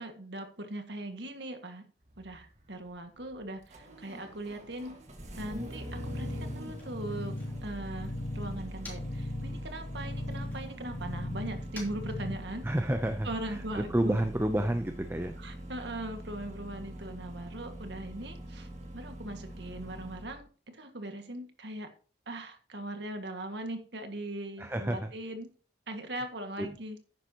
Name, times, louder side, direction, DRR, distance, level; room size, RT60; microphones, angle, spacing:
voice 1, 0.0-1.9 2.2-5.0 5.4-7.4 7.6-12.7 13.2-14.2 15.4-21.9 22.3-25.5 25.9-27.0, right 1 dB, 70° right, 6 dB, 1.9 m, -40 dB
Engine starting, 2.0-20.4, equal, 40° right, 1.9 m, -44 dB
Motor vehicle (road), 4.9-9.3 9.6-12.9, left 2 dB, 10° left, 3.3 m, -55 dB
sound 1, 5.9-12.4, left 1 dB, 45° left, 0.7 m, -39 dB
voice 2, 12.6-15.4 24.6-25.1 26.6-26.8, right 1 dB, 10° right, 7 dB, 0.6 m, -30 dB
10.5 x 9.7 x 3.0 m, 0.40 s
head